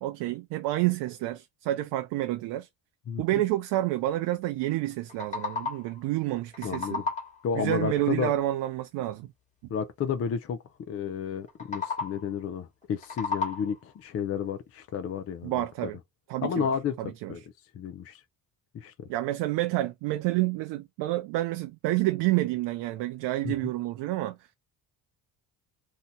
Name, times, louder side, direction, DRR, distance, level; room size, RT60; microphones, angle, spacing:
voice 1, 0.0-2.7 3.2-7.0 7.6-9.3 15.4-16.0 16.3-16.7 17.0-17.3 19.1-24.4, right 16 dB, 85° right, 0.5 m, -29 dB
sound 1, 4.9-6.0 6.4-7.5 11.5-12.4 12.8-13.9, left 4 dB, 15° left, 1.4 m, -34 dB
voice 2, 6.6-7.0 7.4-8.3 9.7-10.6 10.9-15.6 16.4-17.4 17.7-18.2 18.7-19.1 23.4-23.5, left 7 dB, 35° left, 0.5 m, -31 dB
2.8 x 2.2 x 4.0 m
cardioid pair, 115°, 40 cm